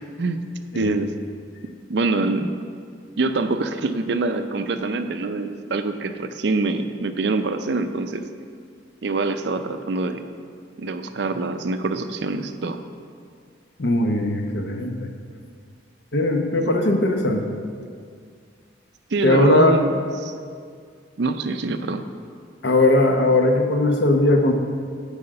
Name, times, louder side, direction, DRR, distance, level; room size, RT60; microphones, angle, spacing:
voice 1, 0.7-1.1 1.9-2.5 3.2-8.2 9.0-10.2 10.8-12.8 19.1-20.3 21.2-22.0, right 3 dB, 60° right, 8 dB, 0.5 m, -25 dB
voice 2, 13.8-15.1 16.1-17.5 19.2-19.8 22.6-24.5, left 2 dB, 65° left, 4 dB, 0.8 m, -19 dB
9.6 x 4.9 x 6.5 m, 2.1 s
head